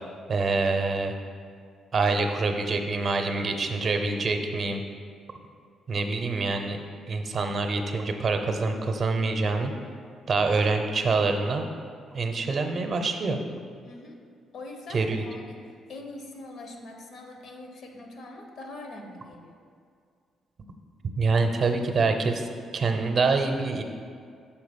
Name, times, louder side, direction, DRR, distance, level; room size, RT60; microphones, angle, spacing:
voice 1, 0.3-1.1 1.9-4.8 5.9-9.7 10.3-11.7 12.1-13.4 14.9-15.2 21.2-22.5 22.7-23.8, right 3 dB, 50° right, 5 dB, 0.6 m, -26 dB
voice 2, 13.8-14.2 14.5-19.5, left 2 dB, 70° left, 3 dB, 0.9 m, -43 dB
5.8 x 3.9 x 5.1 m, 2.2 s
cardioid pair, 90°, 0 cm